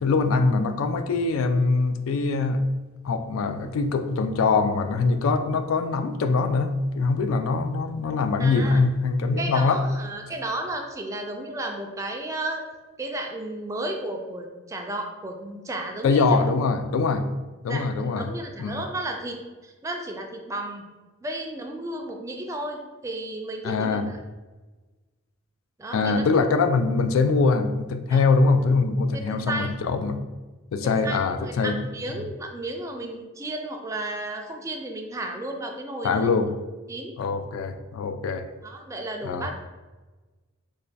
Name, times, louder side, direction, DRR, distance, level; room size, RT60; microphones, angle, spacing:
voice 1, 0.0-2.6 3.0-9.8 16.0-17.3 17.6-18.3 18.6-18.8 23.6-24.1 25.9-30.2 30.7-31.7 36.0-36.5 37.2-38.5 39.2-39.4, left 4 dB, 90° left, 8 dB, 0.3 m, -23 dB
voice 2, 8.4-8.8 9.4-12.6 13.0-16.3 17.7-20.8 21.2-24.2 25.8-26.3 28.1-28.2 29.1-29.7 31.0-36.3 36.9-37.1 38.6-39.5, right 1 dB, 15° right, 3 dB, 0.3 m, -33 dB
3.2 x 2.2 x 3.9 m, 1.2 s
head